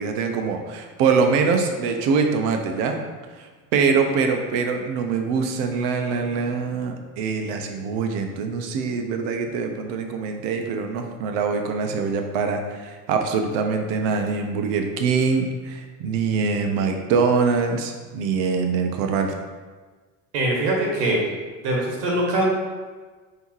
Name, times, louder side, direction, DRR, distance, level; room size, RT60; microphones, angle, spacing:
voice 1, 0.0-3.0 3.4-19.4, right 5 dB, 65° right, 5 dB, 0.7 m, -24 dB
voice 2, 20.3-21.2 21.6-22.5, right 1 dB, 85° right, -1 dB, 1.1 m, -22 dB
5.4 x 2.8 x 3.1 m, 1.4 s
hypercardioid pair, 80°, 46 cm